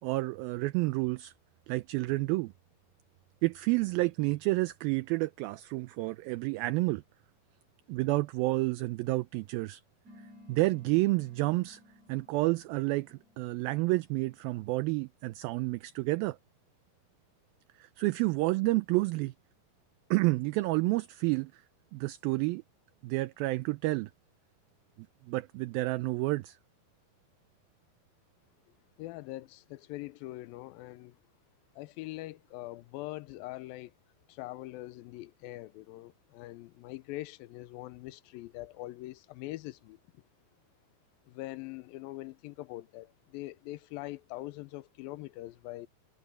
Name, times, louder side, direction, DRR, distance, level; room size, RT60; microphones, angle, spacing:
voice 1, 0.0-1.3 1.7-2.5 3.4-7.0 7.9-9.8 10.5-11.8 12.1-16.4 17.8-19.3 20.1-21.6 21.9-22.6 23.0-24.1 25.3-26.6, right 21 dB, 80° right, 2.3 m, -30 dB
sound 1, 10.0-15.0, left 1 dB, 20° right, 3.8 m, -58 dB
voice 2, 29.0-31.2 31.7-33.9 34.3-40.0 41.3-45.9, left 18 dB, 80° left, 2.2 m, -43 dB
omnidirectional pair, 4.5 m